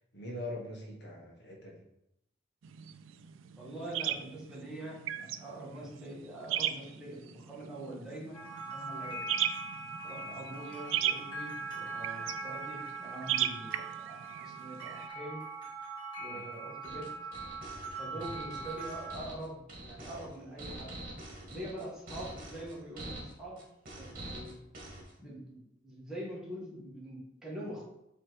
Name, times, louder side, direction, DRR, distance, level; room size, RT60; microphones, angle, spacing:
voice 1, 0.1-1.8 10.2-10.4 16.3-16.5 18.1-18.2, left 1 dB, 60° left, -2 dB, 1.5 m, -43 dB
sound 1, 2.6-15.1, right 11 dB, 85° right, 0.4 m, -37 dB
voice 2, 3.6-8.4 8.7-9.2 10.0-15.4 16.2-17.1 18.0-20.9 21.5-23.6 24.0-24.6 25.2-27.8, right 1 dB, 5° right, -6 dB, 1.9 m, -44 dB
sound 2, 8.3-19.2, right 3 dB, 25° left, 1.6 m, -41 dB
sound 3, 16.8-25.1, right 1 dB, 50° right, 1.7 m, -45 dB
7.6 x 3.4 x 4.7 m, 0.82 s
head